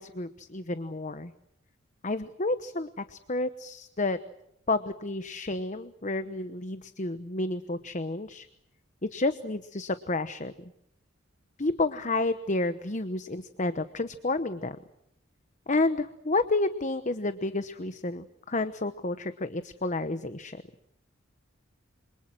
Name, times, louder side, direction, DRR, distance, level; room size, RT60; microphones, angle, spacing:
voice 1, 0.0-1.3 2.0-4.2 4.7-8.5 9.0-10.5 11.6-14.8 15.7-20.6, left 2 dB, 35° left, 11 dB, 1.0 m, -30 dB
27.5 x 26.5 x 6.2 m, 0.80 s
head